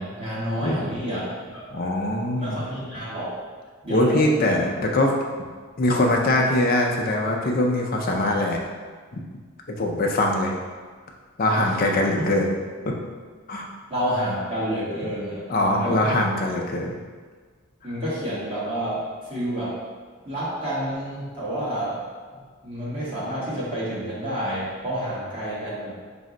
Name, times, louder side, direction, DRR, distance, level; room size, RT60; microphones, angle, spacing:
voice 1, 0.0-1.7 2.4-3.3 3.8-4.3 11.6-11.8 12.2-12.3 13.9-16.1 17.8-19.0 19.3-19.8 20.2-22.0 22.6-25.9, equal, 25° right, -9 dB, 1.2 m, -29 dB
voice 2, 1.7-2.6 3.9-5.1 5.8-8.6 9.1-9.2 9.8-10.5 11.4-12.5 12.8-13.0 13.5-13.7 15.5-17.0 17.8-17.9, left 1 dB, 45° left, 0 dB, 0.4 m, -22 dB
4.2 x 2.0 x 3.7 m, 1.5 s
head